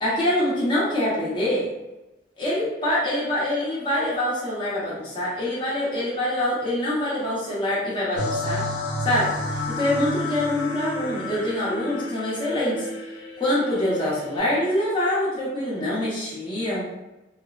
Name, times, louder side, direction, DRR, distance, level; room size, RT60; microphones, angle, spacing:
voice 1, 0.0-1.7 2.4-8.6 9.0-9.3 9.7-12.9 13.4-17.0, left 1 dB, 25° left, -7 dB, 0.9 m, -25 dB
sound 1, 8.1-14.4, left 2 dB, 90° left, 0.8 m, -31 dB
3.2 x 2.0 x 2.4 m, 1.0 s
head